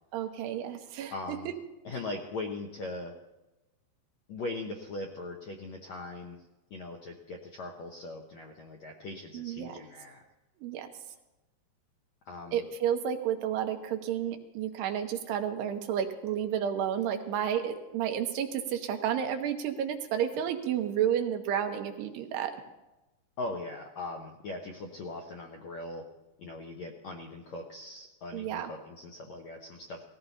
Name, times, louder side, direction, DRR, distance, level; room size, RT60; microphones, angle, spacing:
voice 1, 0.1-1.4 9.3-9.8 10.6-10.9 12.5-22.5 28.3-28.7, right 9 dB, 80° right, 5 dB, 3.1 m, -31 dB
voice 2, 1.1-1.5 1.8-3.2 4.3-6.4 6.7-10.2 12.2-12.6 23.4-26.1 26.4-30.0, left 2 dB, 75° left, 1 dB, 1.6 m, -40 dB
19.0 x 15.0 x 4.1 m, 1.0 s
omnidirectional pair, 4.8 m